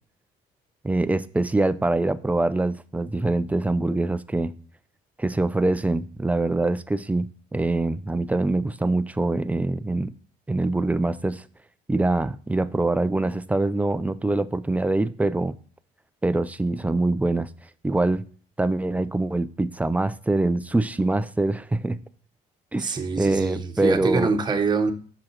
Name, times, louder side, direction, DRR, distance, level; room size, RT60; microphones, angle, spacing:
voice 1, 0.8-4.5 5.2-10.1 10.5-11.4 11.9-15.6 16.2-17.5 17.8-18.3 18.6-22.0 22.7-24.3, right 2 dB, 10° right, 0.5 m, -24 dB
voice 2, 22.8-24.9, right 4 dB, 25° right, 1.2 m, -24 dB
7.5 x 6.2 x 4.3 m
cardioid pair, 110°, 17 cm